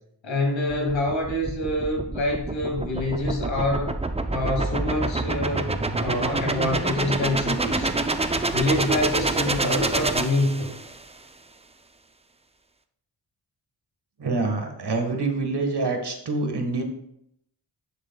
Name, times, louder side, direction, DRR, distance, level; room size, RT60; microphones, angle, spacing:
voice 1, 0.2-4.0 4.3-7.9 8.2-10.7, left 1 dB, 80° left, 1 dB, 2.3 m, -26 dB
sound 1, 0.7-11.0, right 2 dB, 15° right, 0.5 m, -27 dB
voice 2, 14.2-16.8, right 3 dB, 60° right, 4 dB, 1.6 m, -26 dB
10.0 x 6.8 x 2.3 m, 0.75 s
cardioid pair, 65°, 45 cm